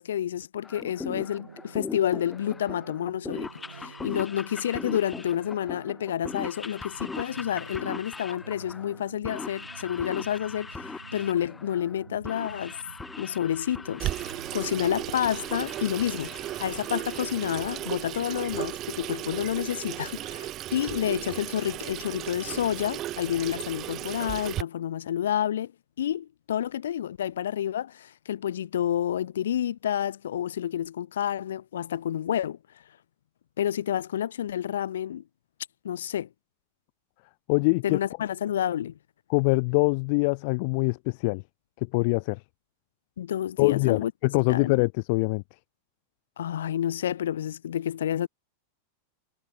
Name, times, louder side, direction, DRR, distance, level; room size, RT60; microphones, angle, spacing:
voice 1, 0.0-12.8 13.2-25.7 26.0-32.6 33.6-35.2 35.8-36.3 37.8-38.9 43.2-44.1 44.5-44.7 46.4-48.3, left 10 dB, 60° left, 1.3 m, -29 dB
sound 1, 0.6-18.0, left 4 dB, 10° left, 2.7 m, -41 dB
sound 2, 0.7-15.7, right 6 dB, 75° right, 2.8 m, -49 dB
Water tap faucet / Sink (filling or washing), 14.0-24.6, right 14 dB, 35° right, 0.4 m, -35 dB
voice 2, 37.5-38.0 39.3-41.4 41.9-42.4 43.6-45.4, left 30 dB, 45° left, 0.3 m, -24 dB
figure-of-eight pair, 90°, 0 cm